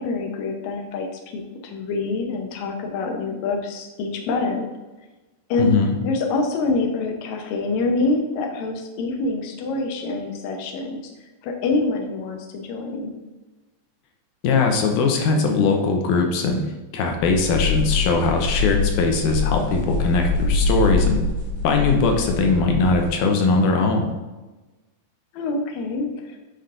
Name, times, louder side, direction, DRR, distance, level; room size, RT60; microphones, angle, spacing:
voice 1, 0.0-4.6 5.5-5.8 6.0-11.0 11.4-13.1 25.3-26.4, left 3 dB, 75° left, 2 dB, 2.1 m, -26 dB
voice 2, 5.6-6.0 14.4-16.6 16.9-21.2 21.6-24.1, left 4 dB, 90° left, 3 dB, 2.3 m, -20 dB
sound 1, 17.2-23.2, left 3 dB, 20° left, 1.9 m, -24 dB
10.0 x 5.1 x 2.5 m, 1.2 s
omnidirectional pair, 3.5 m